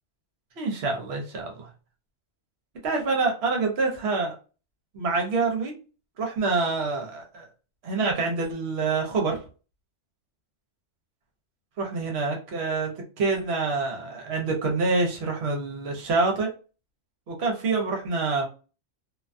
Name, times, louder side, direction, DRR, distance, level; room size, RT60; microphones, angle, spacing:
voice 1, 0.6-1.7 2.8-4.4 4.9-5.7 6.2-7.5 7.8-9.4 11.8-16.5 17.3-18.5, right 3 dB, 60° right, 1 dB, 1.0 m, -26 dB
2.5 x 2.2 x 2.5 m, 0.34 s
omnidirectional pair, 1.3 m